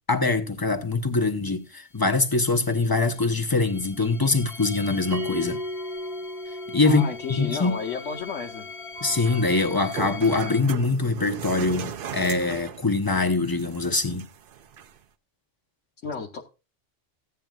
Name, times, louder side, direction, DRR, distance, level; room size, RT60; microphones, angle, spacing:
voice 1, 0.1-5.6 6.7-7.0 7.3-7.7 9.0-14.2, left 3 dB, 20° left, 0.9 m, -23 dB
sound 1, 0.7-0.8 1.0-1.1 1.5-10.6, left 4 dB, 40° left, 0.5 m, -42 dB
Bell, 5.1-10.2, equal, 15° right, 0.8 m, -37 dB
voice 2, 6.8-8.7 16.0-16.4, left 5 dB, 75° left, 1.3 m, -32 dB
sound 2, 9.0-15.0, right 8 dB, 55° right, 0.7 m, -38 dB
15.5 x 9.1 x 2.4 m
omnidirectional pair, 1.3 m